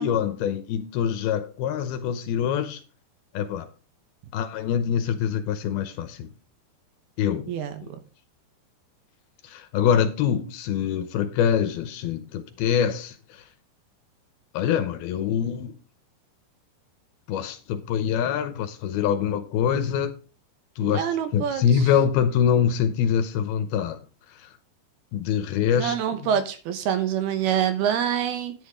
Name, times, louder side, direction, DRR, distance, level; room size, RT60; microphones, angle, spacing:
voice 1, 0.0-2.8 3.3-3.7 4.3-6.3 7.2-7.5 7.8-7.9 9.4-13.4 14.5-15.7 17.3-20.1 20.8-21.1 21.3-24.0 24.4-24.5 25.1-26.0 26.2-26.3, left 8 dB, 75° left, 2.5 m, -24 dB
voice 2, 20.8-21.6 25.7-28.5, right 9 dB, 75° right, 2.9 m, -26 dB
10.5 x 9.9 x 3.7 m
omnidirectional pair, 4.9 m